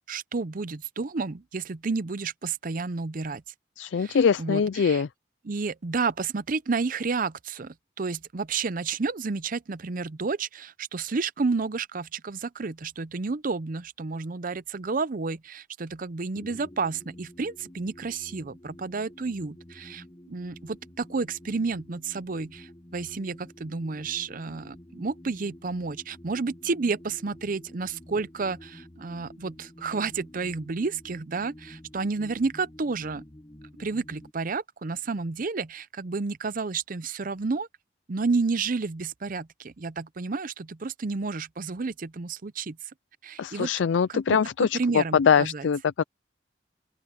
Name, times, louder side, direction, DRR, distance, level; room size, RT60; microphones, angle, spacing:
voice 1, 0.1-3.4 4.0-5.0 5.4-33.2 33.8-37.7 38.1-42.8 43.2-43.7 44.1-45.7, right 4 dB, 45° right, 0.6 m, -31 dB
voice 2, 3.8-5.1 43.4-46.0, left 6 dB, 75° left, 0.4 m, -23 dB
sound 1, 16.3-34.3, left 1 dB, 20° left, 1.2 m, -49 dB
open air
head